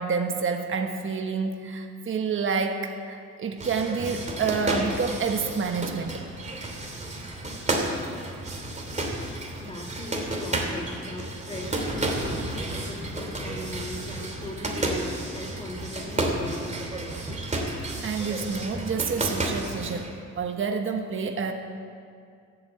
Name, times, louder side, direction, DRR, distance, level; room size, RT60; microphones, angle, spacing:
voice 1, 0.0-6.2 18.0-21.5, right 5 dB, 45° right, 4 dB, 1.3 m, -28 dB
sound 1, 3.6-20.1, right 1 dB, 25° right, 2.8 m, -31 dB
voice 2, 9.6-12.4 12.8-17.1 21.3-21.4, left 1 dB, 20° left, -3 dB, 1.9 m, -39 dB
14.5 x 8.5 x 8.4 m, 2.3 s
cardioid pair, 90°, 30 cm